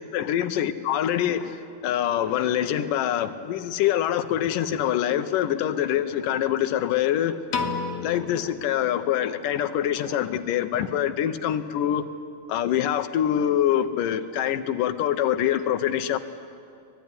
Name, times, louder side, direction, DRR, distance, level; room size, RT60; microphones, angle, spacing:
voice 1, 0.1-7.4 8.0-12.1 12.5-16.2, left 10 dB, 85° left, 10 dB, 2.6 m, -25 dB
Piano, 7.5-9.8, left 5 dB, 60° left, 2.3 m, -33 dB
24.5 x 19.5 x 9.9 m, 2.4 s
omnidirectional pair, 3.8 m